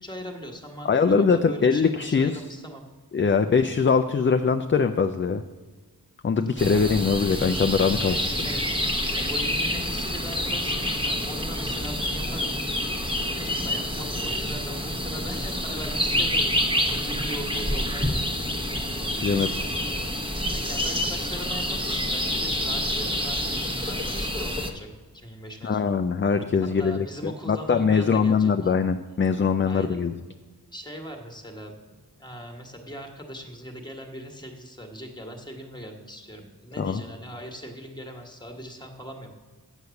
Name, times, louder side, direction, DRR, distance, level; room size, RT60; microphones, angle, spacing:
voice 1, 0.0-2.9 8.0-8.7 9.1-12.7 13.3-16.6 16.8-18.8 19.1-19.5 20.5-24.9 25.1-26.0 26.6-28.7 29.6-30.0 30.7-39.3, equal, 10° left, 3 dB, 1.4 m, -40 dB
voice 2, 0.8-2.4 3.1-5.4 6.2-8.2 19.2-19.5 25.6-30.1 36.8-37.0, left 5 dB, 30° left, 7 dB, 0.4 m, -22 dB
sound 1, 6.6-24.7, left 1 dB, 15° right, 1.0 m, -27 dB
8.1 x 6.4 x 6.9 m, 1.4 s
wide cardioid pair, 60°, 39 cm